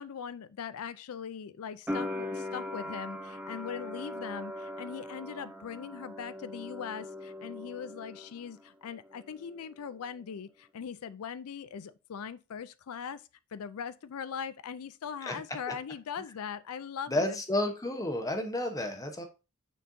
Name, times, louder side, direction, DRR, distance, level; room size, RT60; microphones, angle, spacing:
voice 1, 0.0-13.2 13.5-17.4, left 7 dB, 75° left, 0.4 m, -40 dB
sound 1, 1.9-8.7 8.9-9.8, left 1 dB, 5° right, 0.5 m, -40 dB
voice 2, 17.1-19.2, left 1 dB, 15° left, 0.9 m, -31 dB
9.0 x 4.4 x 2.7 m
head